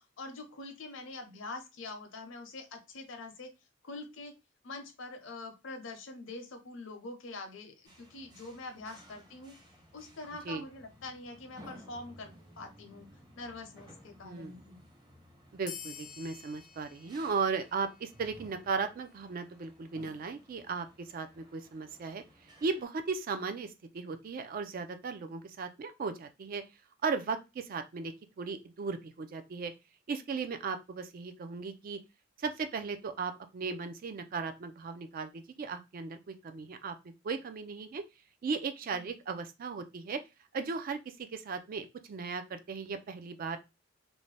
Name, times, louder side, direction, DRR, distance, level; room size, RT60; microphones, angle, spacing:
voice 1, 0.0-3.5 3.8-4.3 4.6-9.5 9.9-13.1 13.4-14.9 38.9-39.1, left 2 dB, 70° left, 5 dB, 0.7 m, -45 dB
sound 1, 7.8-22.8, equal, 20° right, 0.7 m, -57 dB
voice 2, 15.5-22.2 22.6-26.6 27.0-29.7 30.1-32.0 32.4-37.0 37.2-38.0 38.4-40.2 40.5-43.6, right 5 dB, 45° right, 9 dB, 0.3 m, -36 dB
sound 2, 15.7-18.7, left 8 dB, 40° left, 0.3 m, -49 dB
2.6 x 2.1 x 3.1 m, 0.25 s
head